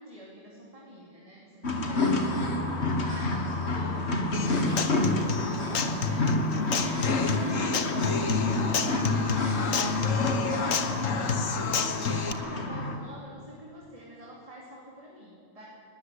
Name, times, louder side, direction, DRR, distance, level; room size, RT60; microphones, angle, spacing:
voice 1, 0.0-6.4 6.7-15.7, equal, 25° right, -4 dB, 2.9 m, -46 dB
sound 1, 1.6-13.0, left 2 dB, 55° left, 2.1 m, -29 dB
sound 2, 1.8-11.8, left 2 dB, 25° left, 1.8 m, -46 dB
Human voice / Acoustic guitar, 4.3-12.3, left 5 dB, 80° left, 1.6 m, -29 dB
21.5 x 13.0 x 10.0 m, 2.6 s
omnidirectional pair, 1.3 m